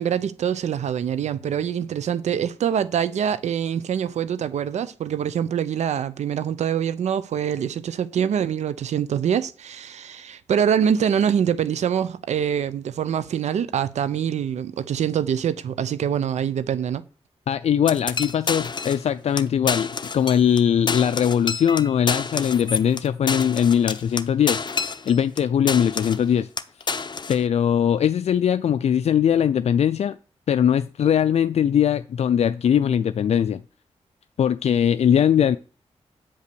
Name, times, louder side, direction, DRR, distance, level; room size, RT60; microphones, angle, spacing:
voice 1, 0.0-17.0, right 8 dB, 85° right, 0.5 m, -24 dB
voice 2, 17.5-19.9 20.1-24.6 25.1-26.5 27.3-30.2 30.5-33.6 34.4-35.6, left 9 dB, 70° left, 0.4 m, -20 dB
sound 1, 17.9-19.1 19.4-19.5 19.7-20.6 20.9-25.4 25.7-26.3 26.6-27.4, left 4 dB, 40° left, 0.7 m, -28 dB
8.8 x 5.4 x 6.8 m
cardioid pair, 70°, 11 cm